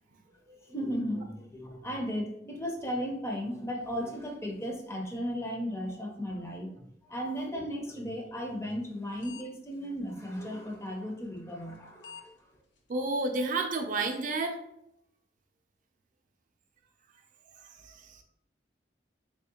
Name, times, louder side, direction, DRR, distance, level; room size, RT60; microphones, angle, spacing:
voice 1, 0.7-12.3, equal, 15° left, 2 dB, 0.5 m, -35 dB
sound 1, 8.7-8.9 9.2-9.4 9.7-9.8 10.7-10.9 11.7-11.8 12.0-12.3 12.8-12.9 13.3-13.4 13.8-13.9, left 7 dB, 90° left, 0.6 m, -47 dB
voice 2, 12.9-14.6 17.8-18.2, right 3 dB, 45° right, 4 dB, 0.4 m, -31 dB
3.4 x 3.1 x 2.8 m, 0.79 s
head